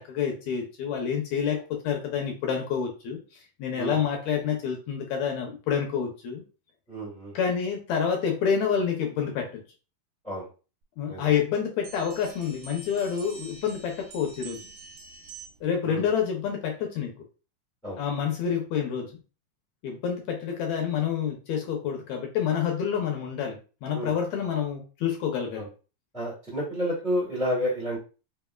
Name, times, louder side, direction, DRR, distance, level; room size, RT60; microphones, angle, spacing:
voice 1, 0.1-6.4 7.3-9.5 11.0-14.6 15.6-17.1 18.0-19.1 19.8-25.7, left 7 dB, 75° left, 2 dB, 1.8 m, -28 dB
voice 2, 6.9-7.3 10.2-10.5 11.1-11.3 15.8-16.0 17.8-18.0 23.9-24.1 25.5-25.7 26.1-28.0, equal, 5° left, -6 dB, 1.2 m, -30 dB
sound 1, 11.8-15.8, right 4 dB, 80° right, 2.6 m, -46 dB
5.4 x 3.3 x 2.3 m, 0.35 s
omnidirectional pair, 3.8 m